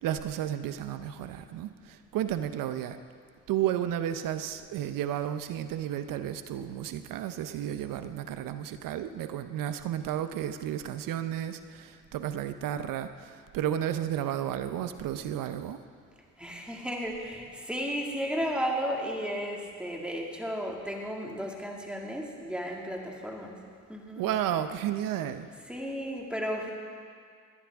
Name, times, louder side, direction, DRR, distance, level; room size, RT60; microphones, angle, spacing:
voice 1, 0.0-3.0 3.5-15.8 24.2-25.5, right 11 dB, 70° right, 10 dB, 0.7 m, -32 dB
voice 2, 16.4-23.5 23.9-24.2 25.7-26.7, equal, 5° right, -1 dB, 2.1 m, -34 dB
19.5 x 11.0 x 3.5 m, 2.1 s
cardioid pair, 85°, 34 cm